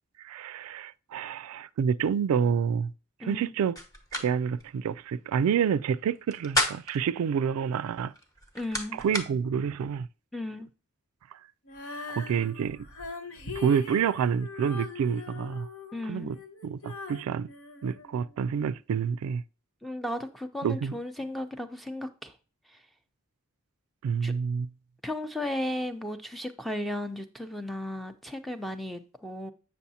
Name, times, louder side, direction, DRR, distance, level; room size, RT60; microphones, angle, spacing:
voice 1, 0.2-2.9 3.2-3.8 4.1-8.1 9.0-10.1 12.1-12.9 13.6-15.7 16.1-16.4 16.6-17.5 17.8-19.4 20.6-20.9 24.0-24.7, right 7 dB, 90° right, 0.3 m, -28 dB
voice 2, 3.2-3.5 8.5-9.0 10.3-10.7 15.9-16.3 19.8-22.3 22.7-22.8 24.2-24.3 25.0-29.5, left 1 dB, ahead, 0.5 m, -35 dB
sound 1, 3.8-4.3 4.6-4.7 6.2-7.0 8.1-9.3, left 1 dB, 15° left, 1.0 m, -30 dB
Female singing, 11.6-18.7, left 3 dB, 75° left, 1.0 m, -42 dB
8.3 x 6.2 x 2.7 m
head